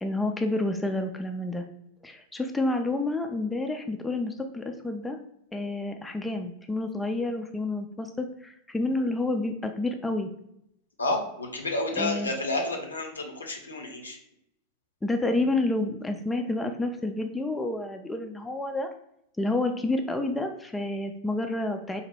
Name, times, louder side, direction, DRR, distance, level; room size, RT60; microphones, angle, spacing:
voice 1, 0.0-1.6 2.0-5.2 5.5-10.3 12.0-12.3 15.0-18.9 19.4-22.0, left 2 dB, 10° left, 5 dB, 0.3 m, -29 dB
voice 2, 11.0-14.2, left 2 dB, 75° left, 2 dB, 0.6 m, -30 dB
3.9 x 2.1 x 3.3 m, 0.77 s
figure-of-eight pair, 90°, 0 cm